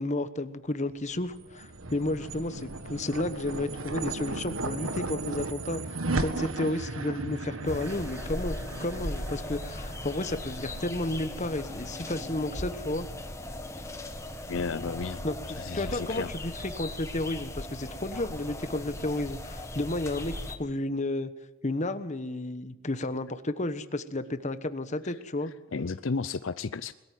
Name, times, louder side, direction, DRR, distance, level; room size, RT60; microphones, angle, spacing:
voice 1, 0.0-13.1 15.2-15.3 15.7-21.3 21.6-25.5, left 2 dB, 35° left, 11 dB, 1.2 m, -32 dB
sound 1, 1.1-11.6, right 2 dB, 80° right, 1.8 m, -36 dB
sound 2, 7.6-20.6, left 1 dB, 15° left, 1.8 m, -38 dB
voice 2, 14.5-15.3 15.5-16.3 25.0-25.1 25.7-26.9, left 4 dB, 65° left, 13 dB, 0.6 m, -33 dB
21.5 x 14.0 x 9.4 m, 1.1 s
head